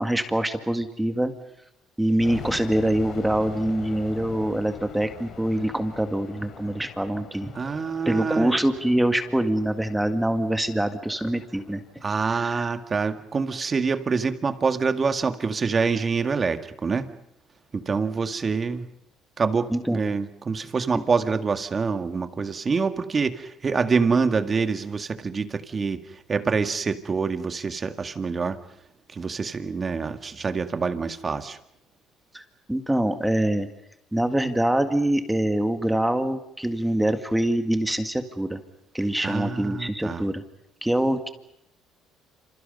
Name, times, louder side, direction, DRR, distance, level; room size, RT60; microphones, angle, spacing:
voice 1, 0.0-1.3 2.0-7.5 8.1-11.8 12.4-12.6 19.7-20.0 20.9-21.0 32.3-33.7 34.1-38.6 38.9-40.4 40.8-41.3, right 1 dB, 5° right, 8 dB, 1.9 m, -24 dB
sound 1, 2.2-13.1, left 7 dB, 55° left, 4.0 m, -43 dB
voice 2, 7.5-8.6 12.0-17.1 17.7-18.9 19.4-28.6 29.1-31.6 39.2-40.2, right 5 dB, 30° right, 9 dB, 1.9 m, -26 dB
28.0 x 27.5 x 5.4 m, 0.78 s
cardioid pair, 105°, 0 cm